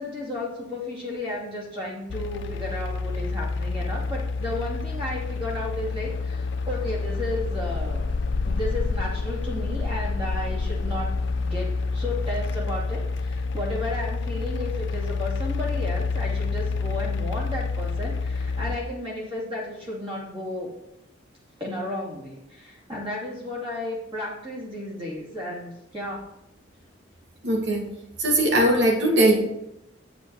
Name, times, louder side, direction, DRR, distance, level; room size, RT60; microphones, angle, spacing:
voice 1, 0.0-8.1 8.5-20.7 21.6-26.3, left 1 dB, 25° right, -4 dB, 2.5 m, -33 dB
sound 1, 2.1-18.8, left 4 dB, 70° left, 0.5 m, -28 dB
voice 2, 27.4-27.9 28.2-29.4, right 1 dB, 65° right, 1 dB, 2.0 m, -20 dB
9.1 x 6.8 x 4.7 m, 0.87 s
head